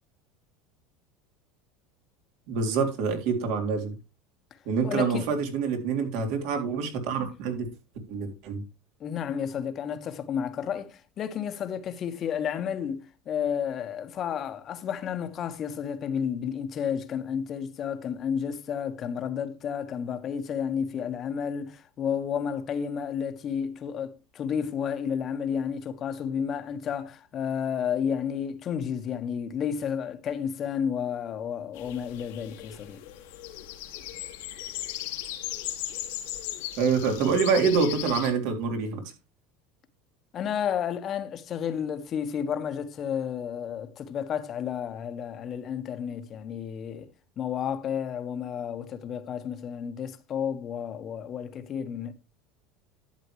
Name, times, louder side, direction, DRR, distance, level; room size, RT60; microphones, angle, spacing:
voice 1, 2.5-4.0 4.7-7.7 8.1-8.6 36.8-39.0, right 5 dB, 70° right, 3.5 m, -26 dB
voice 2, 4.8-5.3 9.0-33.0 40.3-47.1 47.4-52.1, left 8 dB, 35° left, 1.3 m, -31 dB
sound 1, 31.7-38.3, left 13 dB, 80° left, 2.1 m, -37 dB
11.5 x 8.3 x 3.1 m
supercardioid pair, 130°, 0 cm